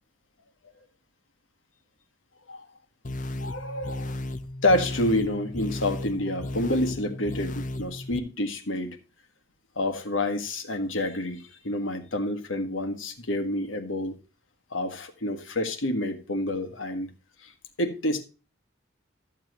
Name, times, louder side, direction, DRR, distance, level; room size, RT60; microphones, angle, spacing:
sound 1, 3.0-8.2, left 1 dB, 40° left, 0.7 m, -34 dB
voice 1, 3.4-4.2 4.6-9.0 9.8-14.2 14.7-17.1 17.4-17.5 17.8-18.2, left 1 dB, 85° left, 1.5 m, -28 dB
13.5 x 7.4 x 3.0 m
head